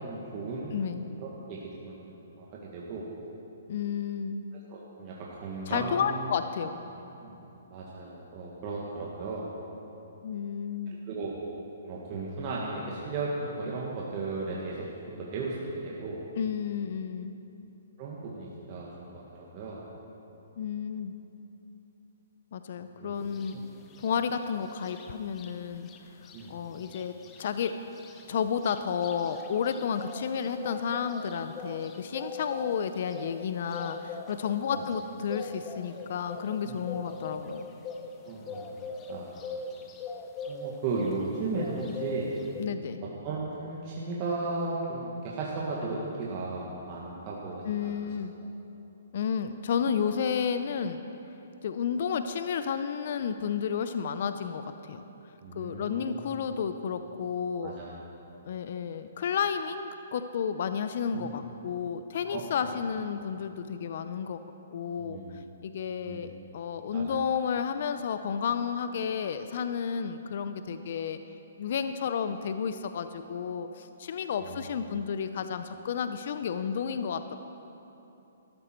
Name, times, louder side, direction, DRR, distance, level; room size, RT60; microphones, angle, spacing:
voice 1, 0.0-3.1 4.7-6.2 6.6-6.7 7.2-7.4 7.7-9.5 10.9-11.3 11.8-16.2 18.0-19.8 22.8-23.3 26.3-26.6 31.7-31.8 36.6-36.8 37.0-37.3 38.2-38.7 39.1-39.3 40.5-42.7 43.2-47.9 55.4-56.3 57.6-57.9 58.3-58.4 61.1-61.3 62.3-62.4 65.0-65.3 66.0-66.2 66.9-67.0 74.4-74.7, right 3 dB, 35° right, -5 dB, 1.7 m, -36 dB
voice 2, 0.7-1.1 3.7-4.4 5.7-6.8 10.2-11.0 16.4-17.4 20.6-21.2 22.5-23.6 24.0-26.2 26.5-27.7 28.3-37.7 42.6-43.0 47.6-48.3 49.1-51.0 51.6-55.0 55.6-57.7 58.5-64.4 64.7-65.2 65.6-71.2 71.6-77.3, left 7 dB, 55° left, 10 dB, 0.5 m, -31 dB
sound 1, 23.3-23.5 23.9-25.5 25.8-26.0 26.2-41.3 41.5-42.6, left 3 dB, 20° left, 0.8 m, -41 dB
13.0 x 12.0 x 4.5 m, 3.0 s
hypercardioid pair, 150°, 0 cm